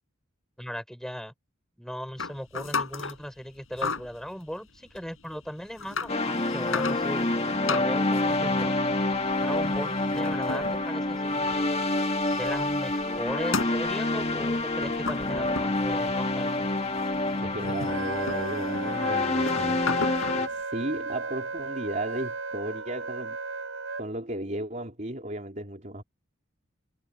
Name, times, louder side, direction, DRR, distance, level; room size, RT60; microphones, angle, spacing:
voice 1, 0.6-1.3 1.8-7.3 7.7-8.7 9.4-11.5 12.3-16.7, equal, ahead, 6.6 m, -38 dB
sound 1, 2.2-3.2 3.7-4.2 4.9-5.0 5.6-6.1 6.5-7.3 7.7-11.7 12.0-16.4 16.7-20.5, left 4 dB, 70° left, 5.9 m, -35 dB
sound 2, 6.1-20.5, left 2 dB, 30° left, 1.7 m, -27 dB
voice 2, 17.3-19.8 20.5-23.4 24.0-26.0, right 1 dB, 35° right, 3.8 m, -35 dB
Wind instrument woodwind instrument, 17.9-24.0, right 4 dB, 70° right, 5.0 m, -35 dB
head